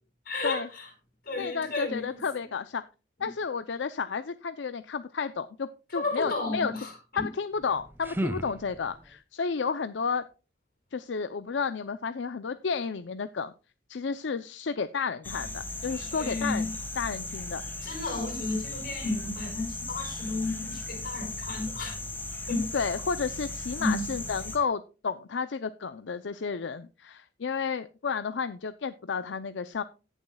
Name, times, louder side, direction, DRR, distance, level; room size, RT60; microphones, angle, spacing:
voice 1, 0.3-0.9 1.3-2.2 5.9-7.2 16.1-16.7 17.8-22.0 22.5-22.7 23.8-24.1, left 2 dB, 50° left, 5.5 m, -32 dB
voice 2, 1.4-2.8 3.2-6.7 7.1-10.2 10.9-13.5 13.9-17.6 22.7-29.8, left 5 dB, 75° left, 0.5 m, -32 dB
sound 1, 7.5-9.2, right 1 dB, 10° right, 0.5 m, -35 dB
sound 2, 15.2-24.6, left 2 dB, 10° left, 1.5 m, -37 dB
17.5 x 7.3 x 2.3 m
head